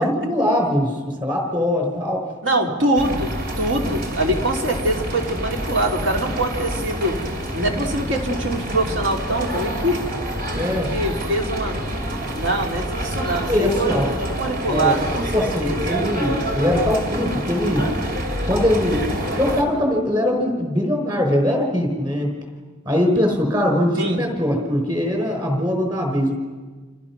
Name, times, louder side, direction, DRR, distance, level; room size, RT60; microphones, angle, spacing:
voice 1, 0.0-2.3 10.5-10.9 13.5-14.1 14.7-15.0 15.3-17.9 18.4-22.3 22.9-26.4, left 1 dB, 25° right, 3 dB, 5.5 m, -21 dB
voice 2, 2.4-3.3 3.6-7.2 7.5-10.1 10.5-11.8 12.3-14.0 14.4-15.8 24.0-24.2, right 1 dB, 70° right, 2 dB, 3.4 m, -23 dB
sound 1, 3.0-19.6, equal, 50° right, 3.5 m, -27 dB
29.0 x 28.0 x 6.2 m, 1.4 s
head